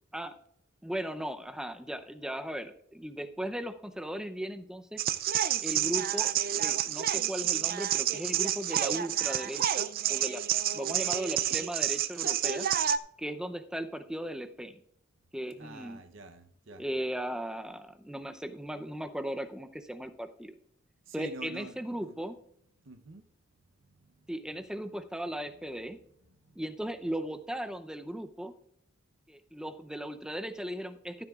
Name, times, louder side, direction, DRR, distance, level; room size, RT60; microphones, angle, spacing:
voice 1, 0.8-5.0 5.6-10.4 10.7-12.7 13.2-14.8 15.3-16.0 16.7-20.5 21.1-22.4 24.3-26.0 26.6-28.6 29.3-31.2, right 1 dB, 5° right, 0.6 m, -37 dB
sound 1, 5.0-13.0, right 10 dB, 50° right, 0.4 m, -29 dB
voice 2, 15.6-16.8 21.1-22.2 22.8-23.3 24.2-24.3 26.4-26.6, right 2 dB, 75° right, 0.8 m, -47 dB
14.5 x 9.9 x 2.4 m
head